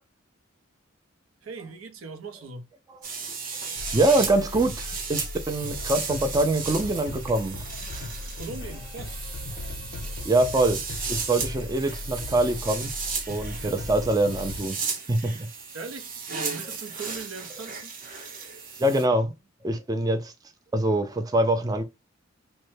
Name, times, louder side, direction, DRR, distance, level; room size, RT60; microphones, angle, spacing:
voice 1, 1.4-2.7 8.4-9.2 13.6-13.8 15.7-17.9, right 4 dB, 85° right, 0.6 m, -40 dB
sound 1, 3.0-19.0, right 5 dB, 45° right, 0.7 m, -35 dB
sound 2, 3.8-14.7, left 2 dB, 55° left, 0.4 m, -38 dB
voice 2, 3.9-7.6 10.3-10.8 11.1-12.9 13.3-14.7 15.1-15.4 18.8-19.3 19.6-20.3 20.7-21.8, right 2 dB, 20° right, 0.4 m, -24 dB
3.1 x 2.1 x 3.1 m
head